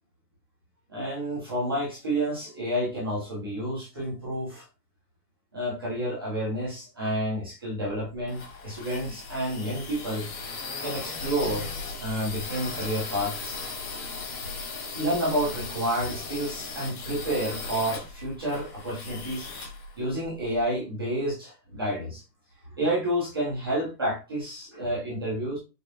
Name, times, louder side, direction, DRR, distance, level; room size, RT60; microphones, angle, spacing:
voice 1, 0.9-4.6 5.5-10.3 10.8-11.7 12.0-13.6 14.9-19.5 20.0-22.2 22.8-25.6, right 1 dB, 15° right, -7 dB, 0.4 m, -30 dB
sound 1, 7.9-20.6, left 3 dB, 60° left, 1.6 m, -37 dB
5.0 x 2.1 x 2.6 m, 0.29 s
hypercardioid pair, 165°, 50 cm